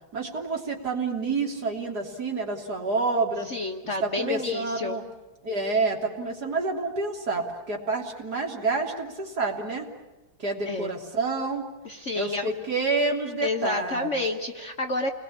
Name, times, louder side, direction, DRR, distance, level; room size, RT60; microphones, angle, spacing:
voice 1, 0.1-3.5 3.8-5.0 5.4-9.9 10.4-11.6 12.1-14.1, right 3 dB, 50° right, 0 dB, 3.7 m, -28 dB
voice 2, 3.5-5.0 10.7-10.9 11.8-12.5 13.4-15.1, left 2 dB, 40° left, 3 dB, 1.4 m, -30 dB
29.5 x 21.5 x 8.7 m, 1.1 s
omnidirectional pair, 2.3 m